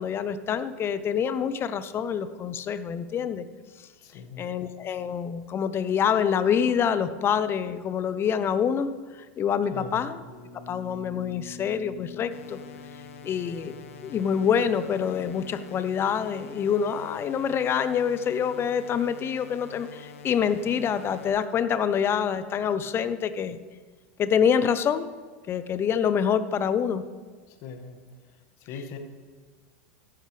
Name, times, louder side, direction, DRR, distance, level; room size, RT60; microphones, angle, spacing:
voice 1, 0.0-3.5 4.4-10.2 10.7-12.6 13.2-13.7 14.0-23.6 24.2-25.1 25.5-27.0 28.7-28.8, left 7 dB, 30° left, 13 dB, 0.8 m, -26 dB
voice 2, 4.0-4.5 9.7-10.0 27.6-28.0 28.7-29.0, left 5 dB, 55° left, 5 dB, 1.8 m, -39 dB
sound 1, 10.2-15.7, left 3 dB, 55° right, 3.5 m, -46 dB
sound 2, 12.3-21.3, left 5 dB, 80° left, 1.2 m, -46 dB
14.0 x 10.5 x 3.4 m, 1.5 s
hypercardioid pair, 105°, 7 cm